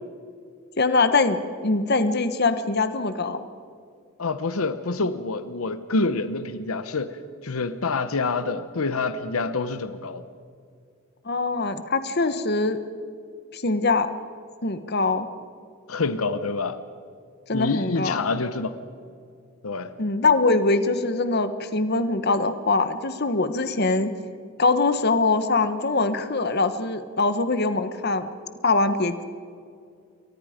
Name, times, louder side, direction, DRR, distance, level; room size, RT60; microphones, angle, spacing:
voice 1, 0.8-3.4 11.2-12.8 13.5-14.1 14.6-15.3 17.5-18.3 20.0-24.1 24.6-28.3 28.6-29.2, left 3 dB, 50° left, 10 dB, 1.3 m, -23 dB
voice 2, 4.2-10.2 15.9-16.8 17.5-18.7 19.6-19.9, left 3 dB, 85° left, 11 dB, 1.0 m, -27 dB
28.5 x 23.0 x 5.2 m, 2.4 s
head